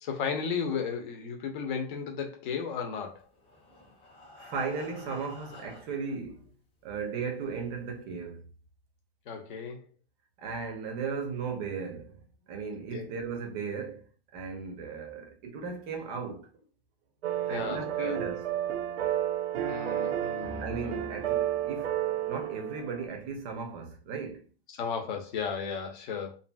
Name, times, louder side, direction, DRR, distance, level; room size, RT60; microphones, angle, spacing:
voice 1, 0.0-3.2 9.3-9.9 12.9-13.1 17.5-18.2 19.6-21.0 24.7-26.4, left 6 dB, 50° left, 0.8 m, -34 dB
Breathing, 3.2-6.2 6.9-7.0 7.4-7.5 7.9-8.0, left 2 dB, 15° left, 0.7 m, -51 dB
voice 2, 4.4-6.5 6.8-8.5 10.4-16.6 17.5-18.5 20.6-22.0 22.3-24.5, right 5 dB, 25° right, 0.6 m, -36 dB
sound 1, 17.2-23.1, right 11 dB, 75° right, 0.6 m, -31 dB
2.7 x 2.6 x 2.3 m
hypercardioid pair, 150°, 32 cm